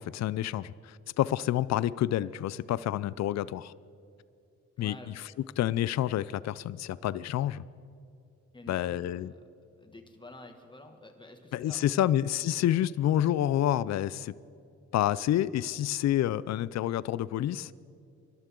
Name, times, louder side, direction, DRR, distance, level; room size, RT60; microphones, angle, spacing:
voice 1, 0.0-3.7 4.8-5.3 5.6-7.6 8.7-9.3 11.5-14.3 14.9-17.7, left 12 dB, 65° left, 18 dB, 0.5 m, -28 dB
voice 2, 4.8-5.5 8.5-9.4 9.8-12.1, left 1 dB, 15° left, 4 dB, 2.0 m, -50 dB
24.5 x 12.5 x 3.8 m, 2.6 s
cardioid pair, 75°, 29 cm